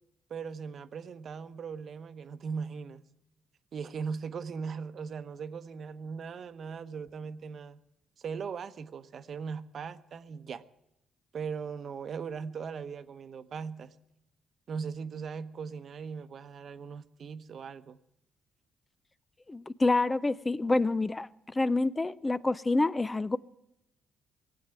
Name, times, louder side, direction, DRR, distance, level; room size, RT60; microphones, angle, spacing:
voice 1, 0.3-3.0 3.7-7.8 8.2-10.6 11.3-13.9 14.7-18.0, right 6 dB, 55° right, 0.9 m, -39 dB
voice 2, 19.5-21.3 21.6-23.4, left 2 dB, 20° left, 0.5 m, -27 dB
19.0 x 8.1 x 9.0 m
cardioid pair, 90°, 0 cm